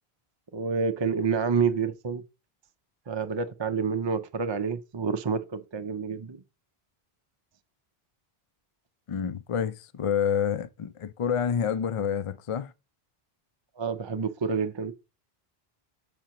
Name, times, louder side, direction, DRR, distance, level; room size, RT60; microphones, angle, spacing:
voice 1, 0.5-2.2 3.1-6.4 13.8-14.9, right 5 dB, 35° right, 0.4 m, -28 dB
voice 2, 9.1-12.7, left 8 dB, 50° left, 0.4 m, -28 dB
9.1 x 5.9 x 2.9 m
omnidirectional pair, 1.1 m